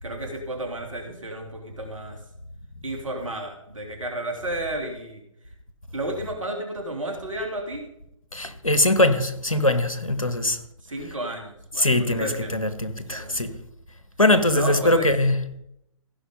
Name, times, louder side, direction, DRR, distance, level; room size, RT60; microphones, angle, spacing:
voice 1, 0.0-2.2 2.8-5.2 5.9-7.9 10.9-12.6 13.1-13.4 14.5-15.1, right 1 dB, 70° right, 2.8 m, -32 dB
voice 2, 8.3-10.6 11.8-13.5 14.2-15.4, left 1 dB, 90° left, 1.3 m, -21 dB
15.5 x 5.4 x 5.3 m
figure-of-eight pair, 130°, 17 cm